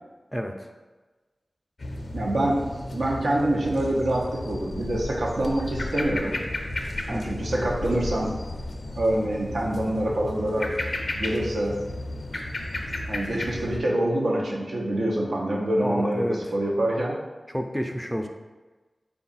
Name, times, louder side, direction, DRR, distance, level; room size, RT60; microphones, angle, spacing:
voice 1, 0.3-0.7 7.1-7.4 15.8-16.5 17.5-18.3, equal, 5° left, 4 dB, 0.4 m, -30 dB
sound 1, 1.8-13.8, left 1 dB, 65° left, 0.5 m, -33 dB
voice 2, 2.1-2.6 2.9-6.4 7.1-8.3 9.0-10.7 11.1-11.8 13.1-17.1, right 1 dB, 85° right, -3 dB, 0.7 m, -25 dB
3.6 x 2.3 x 4.0 m, 1.2 s
wide cardioid pair, 55°, 0 cm